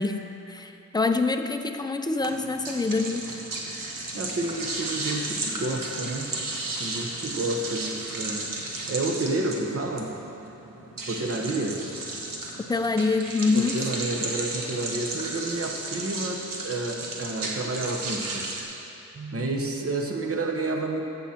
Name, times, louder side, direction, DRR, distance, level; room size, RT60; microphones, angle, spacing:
voice 1, 0.0-3.4 4.0-4.1 12.7-13.8, left 3 dB, 15° left, 7 dB, 0.5 m, -26 dB
sound 1, 2.2-18.6, right 2 dB, 90° right, 1.3 m, -34 dB
voice 2, 4.1-6.3 6.8-8.5 8.9-10.1 11.1-11.8 13.5-18.5 19.1-21.0, right 2 dB, 45° right, 1 dB, 1.1 m, -30 dB
14.0 x 7.3 x 4.4 m, 2.9 s
wide cardioid pair, 120°, 32 cm